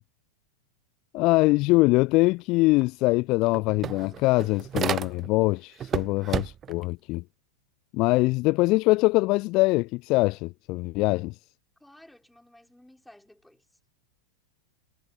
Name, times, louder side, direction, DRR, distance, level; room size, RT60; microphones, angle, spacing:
voice 1, 1.1-7.2 7.9-11.3, left 23 dB, 40° left, 0.3 m, -23 dB
sound 1, 2.8-2.9 3.2-5.4 5.8-6.8, right 9 dB, 25° right, 0.6 m, -32 dB
voice 2, 11.8-13.8, left 1 dB, 5° left, 4.9 m, -55 dB
figure-of-eight pair, 90°, 0 cm